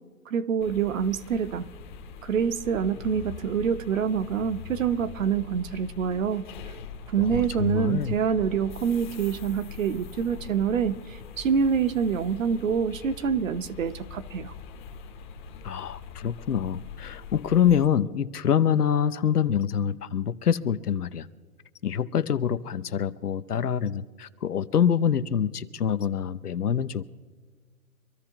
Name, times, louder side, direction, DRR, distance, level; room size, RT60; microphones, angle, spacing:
voice 1, 0.3-1.6 2.2-6.4 7.1-14.5, right 7 dB, 60° right, 0.9 m, -26 dB
sound 1, 0.6-17.9, left 5 dB, 35° left, 0.9 m, -42 dB
voice 2, 7.6-8.1 15.6-21.3 21.8-27.0, left 8 dB, 85° left, 0.9 m, -25 dB
25.0 x 13.5 x 2.9 m
hypercardioid pair, 145°, 45 cm